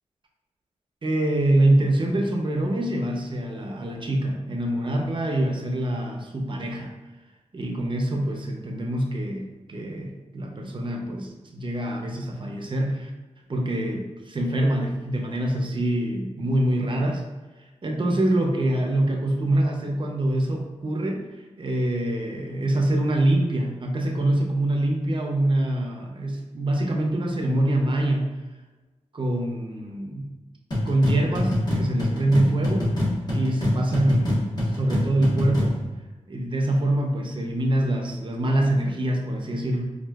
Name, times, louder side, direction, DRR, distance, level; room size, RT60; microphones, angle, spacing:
voice 1, 1.0-6.9 7.5-13.1 13.5-17.2 17.8-21.3 21.6-28.3 29.1-30.3 30.9-32.9 33.3-35.8 36.3-39.8, right 1 dB, 40° right, 1 dB, 0.6 m, -25 dB
sound 1, 30.7-35.8, left 1 dB, 35° left, 1.4 m, -25 dB
4.3 x 2.4 x 2.3 m, 1.2 s
cardioid pair, 65°, 12 cm